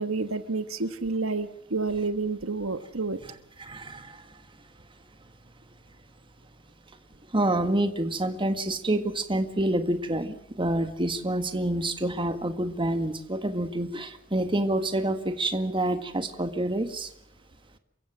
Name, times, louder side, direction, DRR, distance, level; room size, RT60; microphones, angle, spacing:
voice 1, 0.0-3.2, right 3 dB, 70° right, 1.3 m, -29 dB
voice 2, 3.6-4.1 7.3-17.1, right 1 dB, 25° right, 1.7 m, -27 dB
28.0 x 16.0 x 7.5 m
head